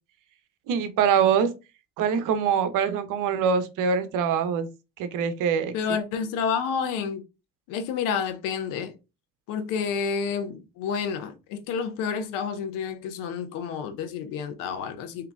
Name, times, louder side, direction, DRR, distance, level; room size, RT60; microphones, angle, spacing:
voice 1, 0.7-1.5 2.0-4.7 5.0-5.7, right 7 dB, 80° right, 0.7 m, -24 dB
voice 2, 5.7-7.2 7.7-8.9 9.5-15.3, left 6 dB, 90° left, 0.7 m, -29 dB
3.8 x 2.9 x 3.4 m
supercardioid pair, 60°, 31 cm